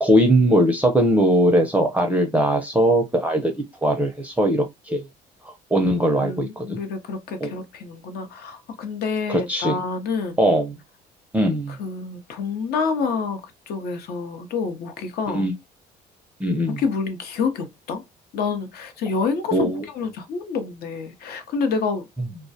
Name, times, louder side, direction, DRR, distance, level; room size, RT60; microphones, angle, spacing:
voice 1, 0.0-3.5 3.8-5.0 5.7-6.8 7.4-7.5 9.3-9.8 10.4-10.8 11.3-11.7 15.3-15.5 16.4-16.8 19.5-19.9, right 1 dB, 10° right, 0.5 m, -20 dB
voice 2, 6.1-10.4 11.7-13.4 13.7-15.5 16.7-18.0 18.3-22.1, left 5 dB, 70° left, 0.7 m, -28 dB
2.3 x 2.1 x 2.6 m
cardioid pair, 110°, 17 cm